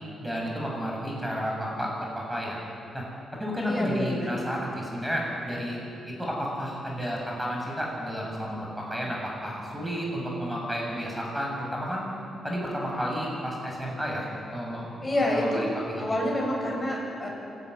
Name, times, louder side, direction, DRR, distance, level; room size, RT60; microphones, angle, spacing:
voice 1, 0.2-2.6 2.9-3.0 3.4-5.8 6.1-12.1 12.4-16.1, equal, 5° right, -2 dB, 7.7 m, -32 dB
voice 2, 3.6-4.3 15.0-15.7 16.0-17.3, left 1 dB, 20° left, -1 dB, 7.0 m, -27 dB
27.0 x 12.5 x 9.9 m, 2.7 s
cardioid pair, 100°, 0 cm